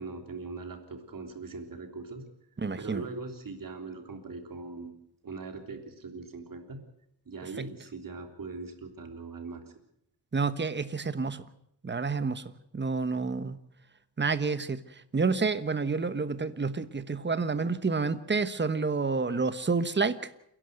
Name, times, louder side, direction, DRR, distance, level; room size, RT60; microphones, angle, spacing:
voice 1, 0.0-2.3 2.8-4.9 5.2-6.8 7.3-9.8, right 3 dB, 55° right, 3.5 m, -41 dB
voice 2, 2.6-3.0 10.3-11.4 11.8-12.4 12.7-13.6 14.2-14.8 15.1-20.2, right 4 dB, 25° right, 1.2 m, -29 dB
29.5 x 11.0 x 8.0 m
wide cardioid pair, 95°, 41 cm